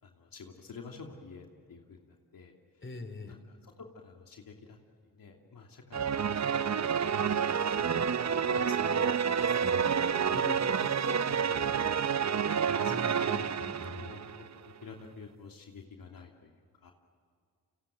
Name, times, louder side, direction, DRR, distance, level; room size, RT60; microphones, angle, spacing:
voice 1, 0.0-2.9 3.2-4.8 5.0-7.3 7.6-12.1 12.5-13.2 14.0-16.6 16.8-16.9, left 4 dB, 65° left, 1 dB, 2.9 m, -48 dB
voice 2, 2.8-3.3 12.8-14.1, left 3 dB, 30° left, 9 dB, 3.4 m, -42 dB
sound 1, 5.9-14.5, right 7 dB, 45° right, 0.9 m, -29 dB
29.5 x 25.0 x 7.7 m, 2.1 s
supercardioid pair, 50°, 38 cm